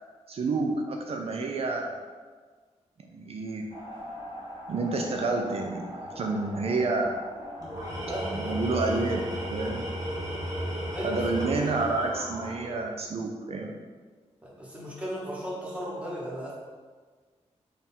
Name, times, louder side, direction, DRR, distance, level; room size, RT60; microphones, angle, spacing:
voice 1, 0.3-2.0 3.1-3.7 4.7-7.2 8.4-9.8 11.0-13.8, right 3 dB, 60° right, 2 dB, 0.4 m, -29 dB
sound 1, 3.7-12.7, left 1 dB, 50° left, 1.4 m, -44 dB
Tools, 7.6-13.0, equal, 35° right, 0.9 m, -34 dB
voice 2, 8.1-8.7 10.1-10.5 10.9-11.2 14.4-16.5, right 1 dB, 10° right, -6 dB, 1.0 m, -36 dB
3.6 x 2.4 x 4.2 m, 1.5 s
wide cardioid pair, 115°, 12 cm